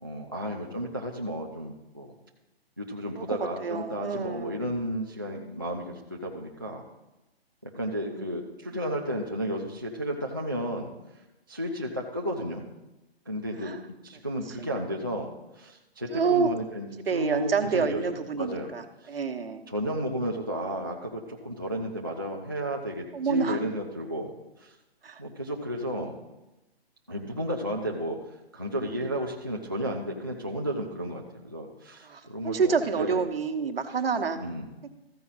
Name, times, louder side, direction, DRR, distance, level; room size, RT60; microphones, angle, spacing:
voice 1, 0.0-2.2 2.8-6.8 7.6-10.9 11.5-12.7 13.3-13.7 14.0-18.0 18.3-18.7 19.0-19.1 19.7-24.3 24.6-24.8 25.2-26.2 27.1-28.2 28.5-33.2 34.4-34.7, equal, 20° right, -2 dB, 0.3 m, -33 dB
voice 2, 3.1-4.6 8.1-8.4 13.6-13.8 16.1-16.5 17.1-19.6 23.1-23.6 25.0-25.2 29.0-29.1 32.0-34.4 34.8-34.9, right 5 dB, 65° right, 7 dB, 1.1 m, -28 dB
14.0 x 4.8 x 5.4 m, 1.0 s
hypercardioid pair, 165°, 31 cm